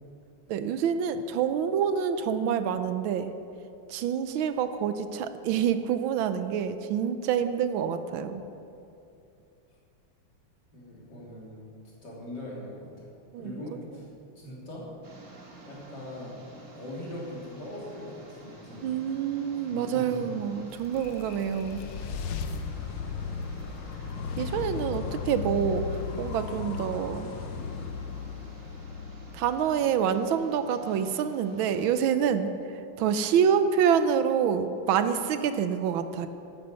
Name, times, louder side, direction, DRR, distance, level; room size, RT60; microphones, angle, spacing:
voice 1, 0.5-3.3 3.9-8.4 13.3-13.5 18.8-21.8 24.4-25.9 26.2-27.3 29.3-32.5 33.0-36.3, right 8 dB, 80° right, 10 dB, 1.4 m, -27 dB
voice 2, 10.7-11.7 12.0-13.1 13.4-14.1 14.4-14.9 15.6-16.5 16.7-19.0 19.5-20.3 24.4-24.9, left 1 dB, 55° left, -5 dB, 3.8 m, -41 dB
sound 1, 15.0-31.9, right 2 dB, 40° right, 2.1 m, -50 dB
sound 2, 20.5-29.8, left 6 dB, 90° left, 1.6 m, -36 dB
12.0 x 10.5 x 6.8 m, 2.7 s
omnidirectional pair, 2.3 m